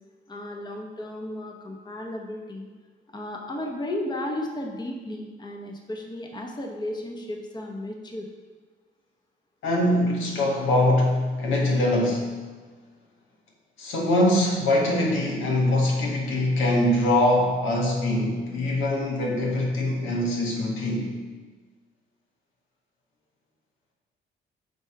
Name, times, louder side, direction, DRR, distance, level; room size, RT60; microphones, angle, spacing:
voice 1, 0.3-2.7 3.1-8.3, left 1 dB, 20° left, 1 dB, 0.9 m, -34 dB
voice 2, 9.6-12.4 13.8-21.1, left 1 dB, 85° left, -2 dB, 1.7 m, -23 dB
8.1 x 3.4 x 5.9 m, 1.4 s
cardioid pair, 90°, 20 cm